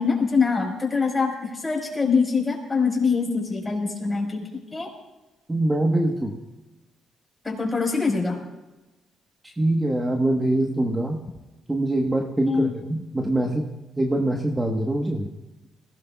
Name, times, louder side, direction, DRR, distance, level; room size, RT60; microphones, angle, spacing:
voice 1, 0.0-4.9 7.4-8.4 12.5-12.7, left 5 dB, 20° left, 0 dB, 5.0 m, -24 dB
voice 2, 5.5-6.4 9.4-11.2 11.7-15.3, right 1 dB, 15° right, 2 dB, 1.3 m, -24 dB
21.5 x 17.5 x 2.4 m, 1.1 s
cardioid pair, 90°, 0 cm